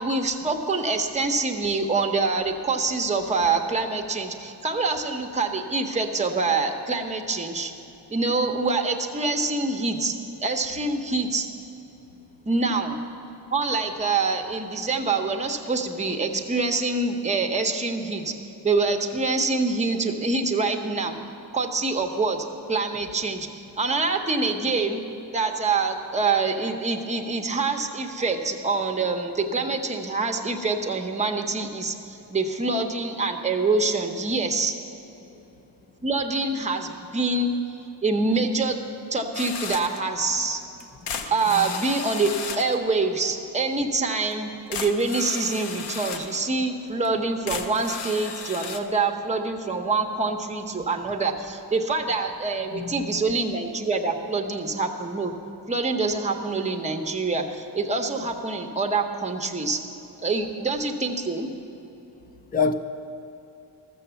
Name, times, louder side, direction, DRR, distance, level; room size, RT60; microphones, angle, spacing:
voice 1, 0.0-7.7 8.1-10.1 10.4-11.5 12.5-13.0 13.5-18.3 18.6-21.2 21.5-25.0 25.3-34.7 36.0-37.5 38.0-38.8 39.1-40.6 41.2-55.3 55.7-59.8 60.2-61.5, right 3 dB, 15° right, 3 dB, 0.8 m, -25 dB
sound 1, 39.3-40.0 40.8-42.8 44.3-44.4 44.7-46.4 47.0-47.1 47.5-48.8, left 6 dB, 75° left, 0.8 m, -34 dB
voice 2, 52.7-53.2 62.5-62.7, left 5 dB, 20° left, 10 dB, 0.4 m, -25 dB
13.5 x 7.0 x 6.9 m, 2.9 s
wide cardioid pair, 145°, 42 cm